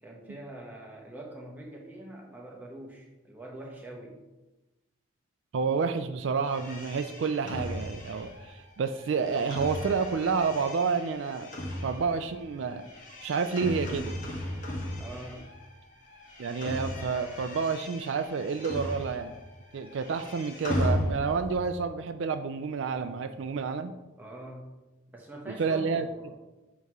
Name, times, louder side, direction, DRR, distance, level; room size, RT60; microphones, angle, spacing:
voice 1, 0.0-4.2 15.0-15.4 24.2-24.6 25.1-26.3, right 1 dB, 10° right, -2 dB, 1.0 m, -44 dB
voice 2, 5.5-11.5 11.8-12.8 13.2-14.1 16.4-19.3 19.7-23.9 25.6-26.1, right 5 dB, 70° right, 9 dB, 0.3 m, -29 dB
sound 1, 6.5-15.7 16.0-19.5 19.7-21.6, left 1 dB, 40° left, 1.3 m, -36 dB
8.0 x 3.0 x 4.7 m, 1.1 s
head